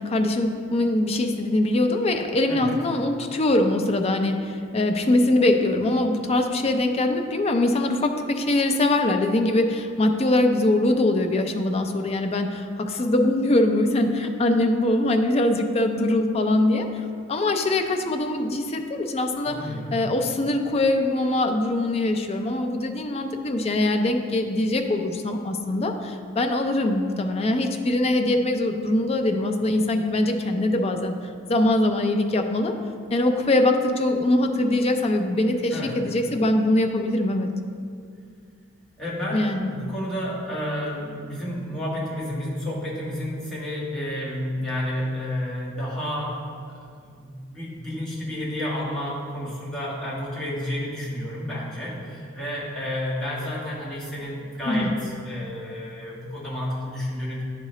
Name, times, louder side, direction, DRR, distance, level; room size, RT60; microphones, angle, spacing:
voice 1, 0.0-19.6 19.9-31.1 31.5-32.7 33.1-37.5 39.3-39.7 54.7-55.0, left 1 dB, 30° left, 5 dB, 0.4 m, -22 dB
voice 2, 19.4-19.9 35.7-35.9 39.0-39.5 39.7-46.4 46.7-46.8 47.1-57.4, left 1 dB, 5° left, -9 dB, 1.6 m, -31 dB
10.0 x 3.7 x 3.1 m, 2.3 s
head